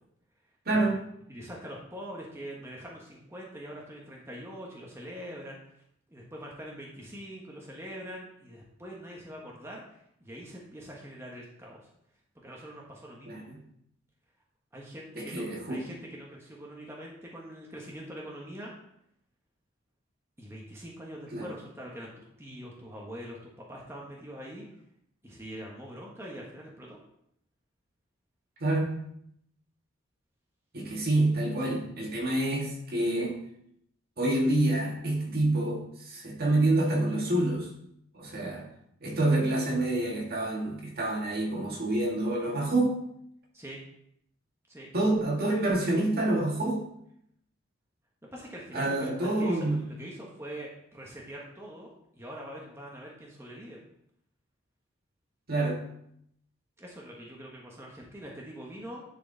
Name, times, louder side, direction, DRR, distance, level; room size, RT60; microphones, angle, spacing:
voice 1, 0.7-1.1 13.3-13.6 15.2-15.8 21.3-21.5 28.6-29.1 30.7-33.4 34.2-37.7 38.1-38.7 39.0-43.0 44.9-46.9 48.7-49.8 55.5-55.9, right 2 dB, 50° right, -1 dB, 1.8 m, -27 dB
voice 2, 1.3-5.8 6.1-11.9 12.4-13.5 14.7-18.7 20.4-23.4 23.7-24.6 25.2-27.0 43.5-43.8 44.7-44.9 48.3-53.8 56.8-59.0, equal, 15° right, -3 dB, 1.3 m, -43 dB
10.5 x 4.9 x 4.0 m, 0.73 s
head